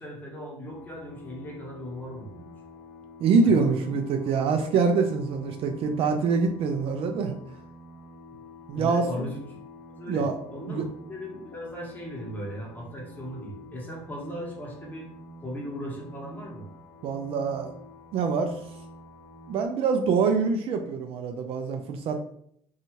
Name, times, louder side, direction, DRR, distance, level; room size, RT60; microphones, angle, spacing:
voice 1, 0.0-2.5 3.4-4.0 8.3-8.4 8.7-9.4 9.9-10.2 10.5-15.1 15.4-16.7, equal, 15° left, -3 dB, 1.2 m, -38 dB
sound 1, 0.6-19.7, left 1 dB, 55° left, 0.8 m, -47 dB
voice 2, 3.2-7.4 8.7-9.3 10.1-10.3 10.7-10.9 17.0-17.7 18.1-18.6 19.5-22.2, right 5 dB, 60° right, 5 dB, 0.4 m, -25 dB
2.6 x 2.4 x 3.0 m, 0.66 s
supercardioid pair, 90°, 11 cm